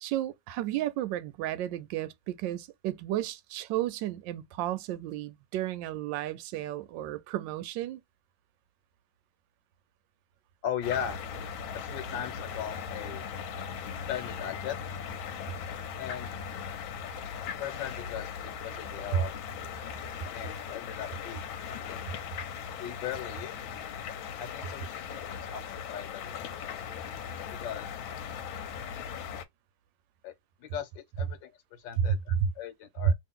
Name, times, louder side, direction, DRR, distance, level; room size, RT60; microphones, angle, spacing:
voice 1, 0.0-8.0 19.1-19.2 32.0-32.5, right 10 dB, 75° right, 1.2 m, -32 dB
voice 2, 10.6-11.2 11.7-13.3 14.1-14.8 16.0-16.3 17.6-19.7 20.3-22.1 22.8-23.6 24.4-26.8 27.5-28.0 30.2-30.3 30.6-33.1, left 9 dB, 70° left, 1.5 m, -38 dB
sound 1, 10.8-29.4, left 7 dB, 90° left, 1.4 m, -39 dB
3.0 x 2.7 x 3.6 m
omnidirectional pair, 2.1 m